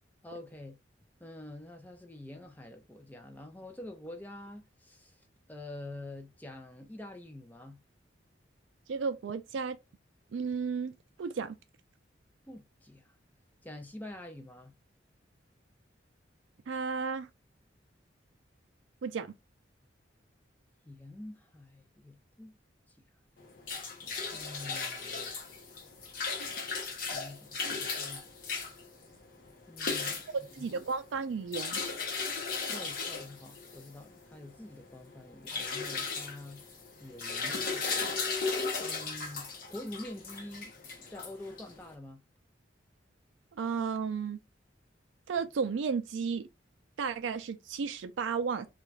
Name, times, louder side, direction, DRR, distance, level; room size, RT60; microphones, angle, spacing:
voice 1, 0.2-0.8 1.2-7.8 12.4-13.1 13.6-14.7 20.9-22.6 22.9-23.0 24.3-25.3 27.0-28.2 29.7-30.2 30.6-30.7 32.6-36.6 37.0-38.0 38.8-40.7 41.0-42.2, left 1 dB, 10° left, 0.3 m, -46 dB
voice 2, 8.9-9.8 10.3-10.9 11.2-11.6 16.7-17.3 19.0-19.3 30.3-31.8 43.5-44.4 45.3-46.5 47.0-48.7, right 5 dB, 85° right, 0.4 m, -33 dB
sound 1, 23.4-41.9, left 4 dB, 50° left, 0.7 m, -36 dB
2.5 x 2.3 x 3.0 m
head